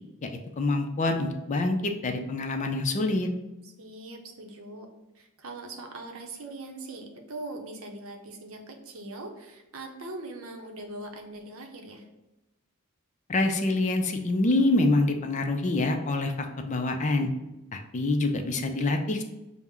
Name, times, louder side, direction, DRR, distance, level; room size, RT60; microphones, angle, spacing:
voice 1, 0.2-3.3 13.3-17.3 17.7-19.2, left 2 dB, 35° left, 5 dB, 0.4 m, -26 dB
voice 2, 3.6-4.9 5.1-12.1, right 2 dB, 70° right, 4 dB, 0.7 m, -41 dB
5.8 x 2.1 x 3.6 m, 0.96 s
head